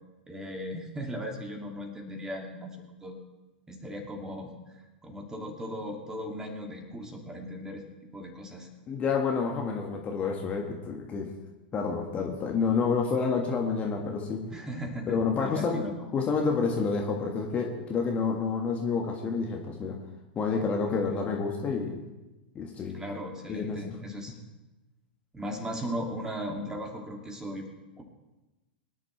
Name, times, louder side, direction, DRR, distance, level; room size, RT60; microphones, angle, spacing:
voice 1, 0.3-3.1 3.7-7.8 8.1-8.7 14.5-16.0 20.9-21.2 22.9-24.3 25.3-27.7 28.0-28.1, equal, 10° right, 1 dB, 2.6 m, -37 dB
voice 2, 8.9-11.3 11.7-14.5 15.1-15.8 16.1-20.0 20.4-22.0 22.6-23.0 23.5-24.0, left 5 dB, 25° left, 1 dB, 1.8 m, -29 dB
23.5 x 10.5 x 3.4 m, 1.1 s
figure-of-eight pair, 100°, 6 cm